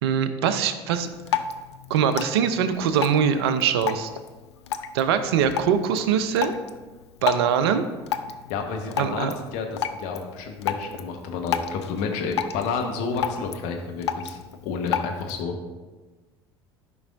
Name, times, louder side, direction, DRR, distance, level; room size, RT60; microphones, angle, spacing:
voice 1, 0.0-1.1 1.9-4.1 4.9-6.5 7.2-7.8 9.0-9.3, right 8 dB, 70° right, 10 dB, 0.7 m, -22 dB
Drip, 0.9-15.4, left 8 dB, 80° left, 0.4 m, -33 dB
voice 2, 8.5-15.5, left 5 dB, 60° left, 3 dB, 1.2 m, -30 dB
13.0 x 5.4 x 2.6 m, 1.3 s
hypercardioid pair, 70°, 14 cm